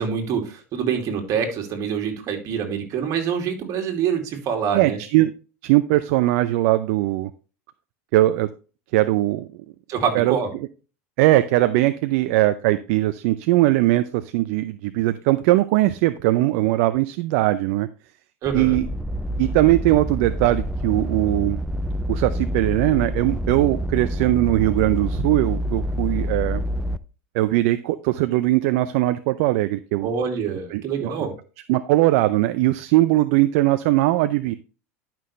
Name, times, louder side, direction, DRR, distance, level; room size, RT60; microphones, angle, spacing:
voice 1, 0.0-5.0 9.9-10.5 18.4-18.8 30.0-31.3, right 7 dB, 45° right, 3 dB, 2.7 m, -25 dB
voice 2, 4.7-5.3 5.6-7.3 8.1-8.5 8.9-9.5 10.1-10.3 11.2-17.9 18.5-18.9 19.4-21.6 22.1-26.6 27.3-30.1 30.7-31.1 31.7-34.5, right 17 dB, 65° right, 13 dB, 0.5 m, -20 dB
sound 1, 18.4-27.0, equal, 5° right, 0.5 m, -27 dB
11.0 x 5.9 x 3.2 m, 0.34 s
hypercardioid pair, 105°, 8 cm